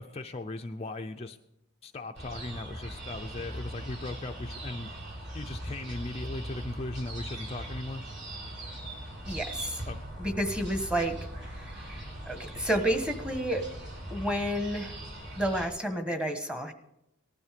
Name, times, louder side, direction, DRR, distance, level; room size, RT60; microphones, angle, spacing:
voice 1, 0.0-1.4 1.8-4.9 5.3-8.0 9.9-10.0, left 2 dB, 25° left, 4 dB, 0.5 m, -38 dB
sound 1, 2.2-15.7, right 1 dB, 50° right, 4.9 m, -40 dB
voice 2, 9.2-9.9 10.2-13.7 14.1-15.0 15.4-16.7, right 1 dB, 5° right, 6 dB, 1.2 m, -31 dB
19.0 x 12.5 x 5.1 m, 0.87 s
head